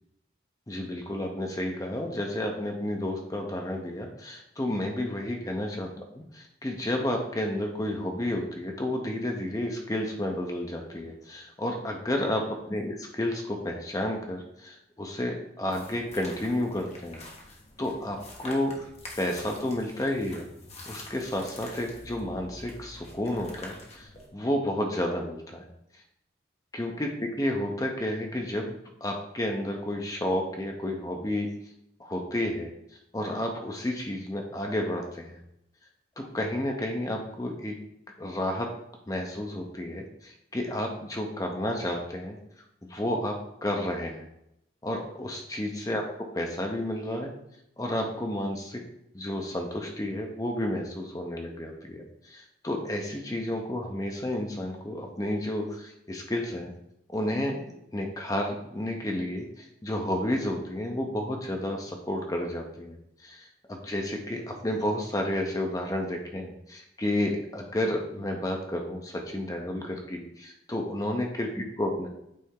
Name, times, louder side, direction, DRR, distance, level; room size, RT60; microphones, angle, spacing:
voice 1, 0.7-17.3 17.8-18.9 19.2-20.5 20.9-25.7 26.7-31.5 32.0-32.7 33.1-35.4 36.2-37.8 38.2-38.7 39.1-42.4 42.9-44.2 44.8-46.0 46.3-47.3 47.8-48.8 49.1-56.7 57.1-57.6 57.9-63.0 63.2-72.1, left 1 dB, 20° left, 2 dB, 0.6 m, -31 dB
sound 1, 15.7-24.3, left 2 dB, 35° left, 1.1 m, -46 dB
8.4 x 3.3 x 3.7 m, 0.79 s
head